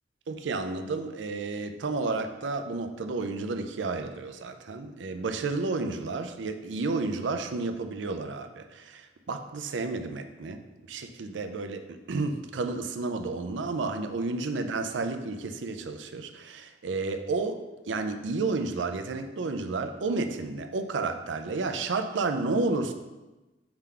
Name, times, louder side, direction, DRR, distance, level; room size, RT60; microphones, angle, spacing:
voice 1, 0.3-10.6 10.9-17.6 17.9-22.9, right 3 dB, 85° right, 8 dB, 0.5 m, -31 dB
5.6 x 4.8 x 3.8 m, 1.1 s
head